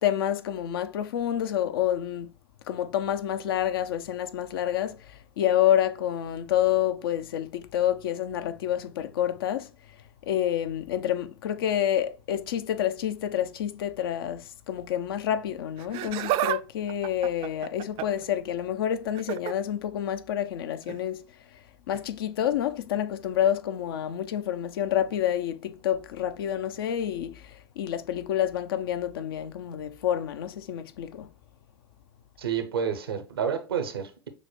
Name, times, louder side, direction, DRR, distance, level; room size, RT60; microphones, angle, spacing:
voice 1, 0.0-2.3 2.7-9.7 10.3-21.2 21.9-31.3, left 11 dB, 75° left, 0.5 m, -28 dB
Laughter, 15.8-16.6 16.9-18.3 19.1-19.5 20.8-21.0 21.9-22.0, right 14 dB, 50° right, 0.4 m, -30 dB
voice 2, 32.4-34.3, right 7 dB, 85° right, 0.7 m, -29 dB
6.4 x 2.2 x 3.0 m
hypercardioid pair, 85°, 12 cm